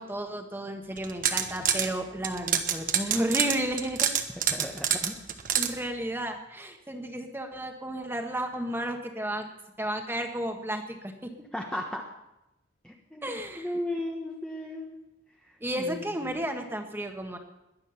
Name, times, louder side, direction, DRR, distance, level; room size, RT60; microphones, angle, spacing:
voice 1, 0.0-4.1 5.5-9.5 9.8-11.3 13.2-13.7 15.6-17.4, right 1 dB, 10° right, 4 dB, 1.5 m, -32 dB
sound 1, 1.0-1.9 2.2-5.7, right 9 dB, 45° right, 1.2 m, -26 dB
voice 2, 4.5-5.2 11.5-12.0 12.8-15.0 15.4-16.4, left 1 dB, 5° left, 0 dB, 1.2 m, -36 dB
21.5 x 8.8 x 5.8 m, 0.89 s
head